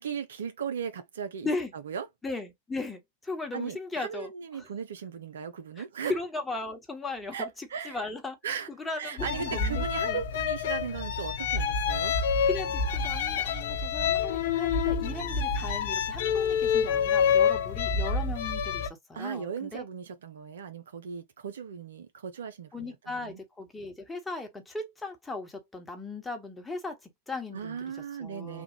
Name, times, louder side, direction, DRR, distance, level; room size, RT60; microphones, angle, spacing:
voice 1, 0.0-1.5 1.8-2.1 3.5-6.1 7.3-8.0 8.4-8.7 9.0-12.1 19.1-23.4 27.5-28.6, right 7 dB, 65° right, 0.6 m, -37 dB
voice 2, 2.2-4.7 5.8-10.2 12.5-19.8 22.7-27.9 28.2-28.6, left 3 dB, 10° left, 1.1 m, -37 dB
sound 1, 9.2-18.9, left 6 dB, 55° left, 0.6 m, -27 dB
3.5 x 2.3 x 2.9 m
figure-of-eight pair, 90°, 0 cm